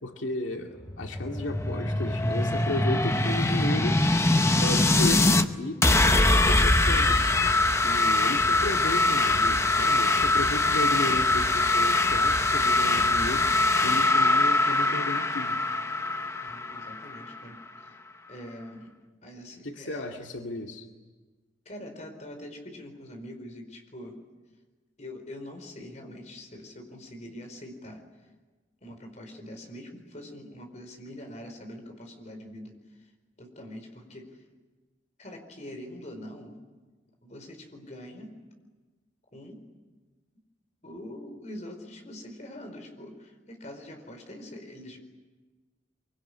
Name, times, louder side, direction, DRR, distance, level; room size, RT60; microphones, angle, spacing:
voice 1, 0.0-4.0 4.6-7.3 7.8-13.5 13.8-15.6 19.6-20.9, left 1 dB, 85° left, 2 dB, 2.3 m, -34 dB
sound 1, 0.8-5.4 5.8-17.4, left 2 dB, 15° left, 0.9 m, -23 dB
voice 2, 16.4-17.9 18.3-18.9 19.2-20.1 21.6-24.2 25.0-28.0 28.8-33.1 33.4-34.4 35.2-36.6 37.2-38.4 39.3-39.6 40.8-45.0, left 1 dB, 40° left, 4 dB, 4.7 m, -44 dB
24.5 x 24.5 x 9.9 m, 1.3 s
head